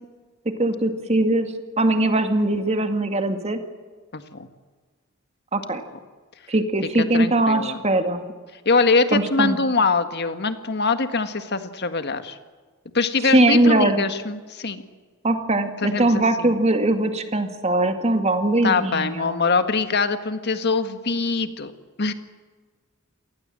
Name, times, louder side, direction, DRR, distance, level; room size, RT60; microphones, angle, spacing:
voice 1, 0.5-3.6 5.5-5.8 6.5-8.2 9.1-9.6 13.3-14.0 15.2-19.4, right 2 dB, 30° right, 7 dB, 2.2 m, -21 dB
voice 2, 4.1-4.5 7.0-7.8 8.6-12.4 12.9-14.8 15.8-16.5 18.6-21.7 22.0-22.1, left 4 dB, 50° left, 9 dB, 1.7 m, -23 dB
27.0 x 19.5 x 7.7 m, 1.4 s
head